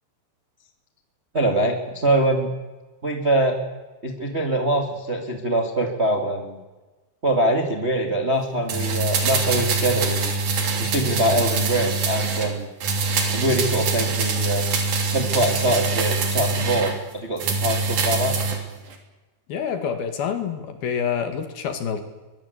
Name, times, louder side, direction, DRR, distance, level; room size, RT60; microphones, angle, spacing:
voice 1, 1.3-2.5 3.0-3.6 4.0-6.6 7.2-10.3 10.8-12.7 13.3-14.6 15.1-18.3, right 1 dB, 25° right, 4 dB, 1.4 m, -23 dB
sound 1, 8.7-12.5 12.8-17.0 17.4-18.6 18.9-19.0, right 4 dB, 50° right, 4.4 m, -24 dB
voice 2, 19.5-22.0, left 7 dB, 60° left, 8 dB, 3.5 m, -27 dB
24.0 x 22.5 x 8.4 m, 1.2 s
omnidirectional pair, 5.5 m